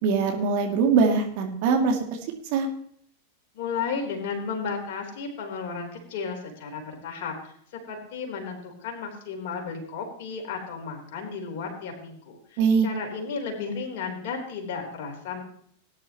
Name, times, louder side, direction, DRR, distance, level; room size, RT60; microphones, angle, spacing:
voice 1, 0.0-2.0 2.5-2.7 12.6-12.9, right 5 dB, 45° right, 2 dB, 2.6 m, -22 dB
voice 2, 3.5-15.4, left 5 dB, 50° left, 2 dB, 4.0 m, -34 dB
19.5 x 10.0 x 3.1 m, 0.63 s
figure-of-eight pair, 90°, 0 cm